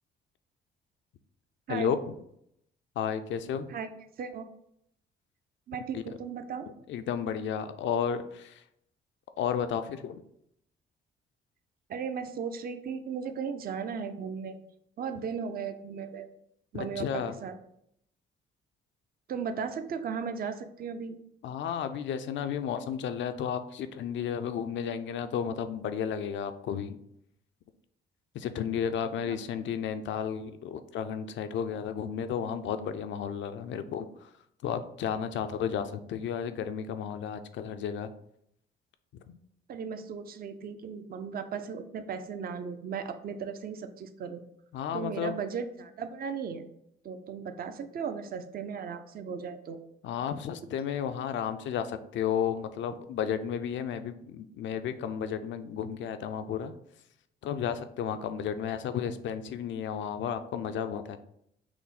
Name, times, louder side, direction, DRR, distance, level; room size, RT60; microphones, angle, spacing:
voice 1, 1.7-2.1 3.0-3.7 5.9-6.0 6.9-8.6 9.4-10.2 16.7-17.4 21.4-27.0 28.3-34.3 34.6-38.1 44.7-45.3 50.0-56.7 57.4-61.2, left 8 dB, 70° left, 9 dB, 0.5 m, -33 dB
voice 2, 4.2-4.5 5.7-6.7 11.9-14.6 15.0-16.3 16.7-17.5 19.3-21.2 29.3-29.4 39.7-44.4 44.9-46.6 47.0-49.8, right 6 dB, 50° right, 9 dB, 0.5 m, -36 dB
5.9 x 2.1 x 4.0 m, 0.74 s
cardioid pair, 90°, 20 cm